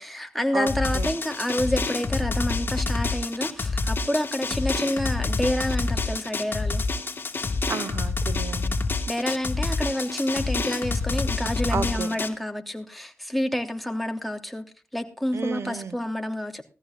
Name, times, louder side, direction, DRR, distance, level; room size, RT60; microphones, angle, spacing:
voice 1, 0.0-6.8 9.1-14.7 14.9-16.6, left 1 dB, ahead, 5 dB, 3.0 m, -28 dB
Drum, 0.7-12.3, left 3 dB, 45° left, 2.6 m, -27 dB
voice 2, 7.7-8.8 11.7-12.1 15.3-16.0, right 6 dB, 65° right, 14 dB, 1.2 m, -31 dB
19.5 x 14.5 x 2.4 m, 0.32 s
cardioid pair, 65°, 5 cm